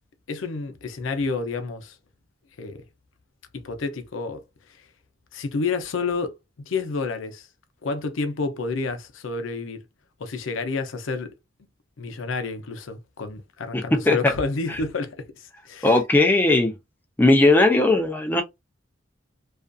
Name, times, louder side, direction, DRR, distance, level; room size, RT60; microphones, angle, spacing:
voice 1, 0.3-2.0 2.6-2.9 3.5-4.9 5.3-6.3 6.7-7.5 7.8-9.8 10.2-11.3 12.0-16.0, left 4 dB, 85° left, 0.6 m, -30 dB
voice 2, 13.7-14.3 15.8-16.7 17.2-18.4, left 2 dB, 10° left, 0.4 m, -18 dB
2.5 x 2.4 x 2.2 m
head